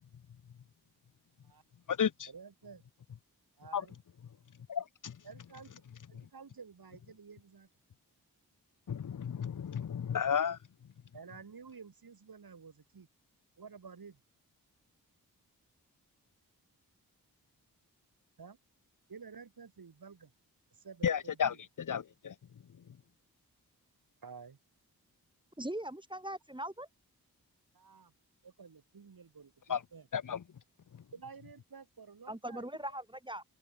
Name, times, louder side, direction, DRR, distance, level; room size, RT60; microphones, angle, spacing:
voice 1, 2.3-2.8 3.6-4.0 5.2-5.8 6.1-7.7 11.1-13.1 13.6-14.2 18.4-18.6 19.1-20.3 20.7-21.6 24.2-24.6 27.7-28.1 28.4-30.1 31.1-32.6, right 5 dB, 65° right, 7.1 m, -51 dB
voice 2, 4.7-5.2 8.9-10.6 21.0-22.3 29.7-29.8 30.1-30.4, left 7 dB, 55° left, 0.9 m, -32 dB
voice 3, 25.6-26.9 32.3-33.4, right 1 dB, 10° right, 3.0 m, -40 dB
open air
cardioid pair, 40°, 38 cm